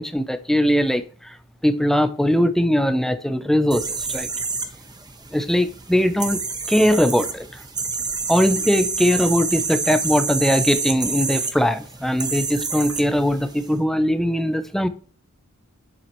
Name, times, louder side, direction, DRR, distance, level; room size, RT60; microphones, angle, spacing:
voice 1, 0.0-1.4 1.6-4.3 5.3-7.6 8.3-14.9, equal, ahead, 0.6 m, -20 dB
sound 1, 3.7-13.7, right 4 dB, 20° right, 1.1 m, -28 dB
8.8 x 7.6 x 3.1 m
head